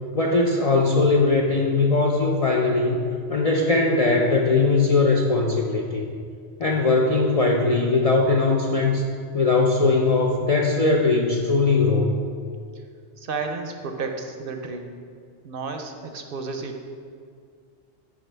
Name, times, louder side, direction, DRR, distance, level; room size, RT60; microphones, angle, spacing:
voice 1, 0.1-3.0 3.3-6.1 6.6-9.0 9.3-12.1, left 3 dB, 50° left, 0 dB, 0.4 m, -20 dB
voice 2, 13.2-14.9 15.4-16.8, right 4 dB, 60° right, 5 dB, 0.7 m, -32 dB
9.3 x 5.1 x 3.3 m, 2.2 s
omnidirectional pair, 1.1 m